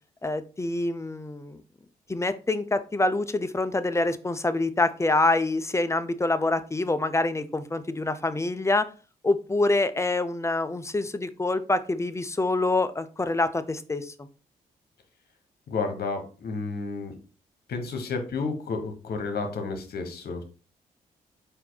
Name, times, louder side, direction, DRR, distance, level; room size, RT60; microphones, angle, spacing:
voice 1, 0.2-1.6 2.1-8.8 9.2-14.3, left 2 dB, 15° left, 12 dB, 0.5 m, -26 dB
voice 2, 15.7-17.1 17.7-20.4, left 4 dB, 65° left, 5 dB, 1.2 m, -31 dB
4.3 x 2.8 x 3.9 m, 0.35 s
supercardioid pair, 50°, 17 cm